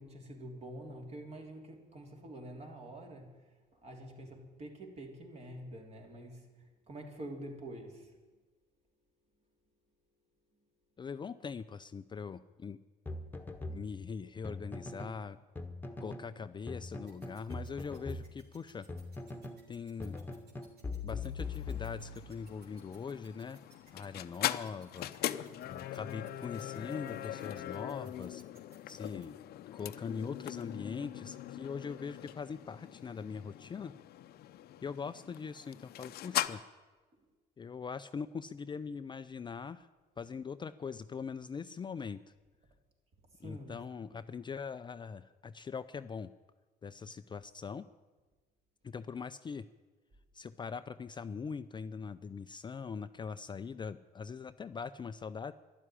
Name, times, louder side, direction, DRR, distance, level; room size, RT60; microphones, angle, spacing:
voice 1, 0.0-8.1 43.4-43.8, right 1 dB, 40° right, 3 dB, 3.2 m, -47 dB
voice 2, 11.0-12.8 13.7-15.4 16.0-18.9 19.7-20.2 21.0-23.6 23.9-25.1 25.7-28.4 28.9-29.4 29.7-33.9 34.8-36.6 37.6-39.9 40.2-42.2 43.4-46.3 46.8-47.9 48.8-49.7 50.3-55.5, left 5 dB, 25° left, 11 dB, 0.5 m, -42 dB
sound 1, 13.1-15.2 15.6-16.3 16.7-19.7 20.0-22.4, left 3 dB, 10° left, 1.3 m, -42 dB
sound 2, 17.1-29.3, right 4 dB, 70° right, 3.5 m, -63 dB
sound 3, 21.4-36.5, left 13 dB, 70° left, 0.7 m, -41 dB
12.5 x 11.5 x 9.9 m, 1.3 s
cardioid pair, 110°, 17 cm